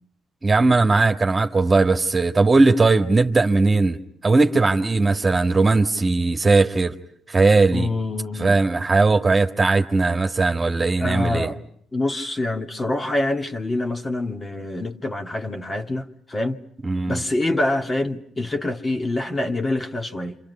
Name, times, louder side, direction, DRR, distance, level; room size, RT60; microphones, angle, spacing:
voice 1, 0.4-6.9 7.3-7.9 8.4-11.5 16.8-17.2, right 3 dB, 30° right, 1.8 m, -18 dB
voice 2, 7.7-8.6 11.0-11.6 11.9-16.6 17.1-20.4, left 2 dB, 25° left, 2.3 m, -26 dB
28.5 x 27.5 x 5.6 m
supercardioid pair, 60°, 0 cm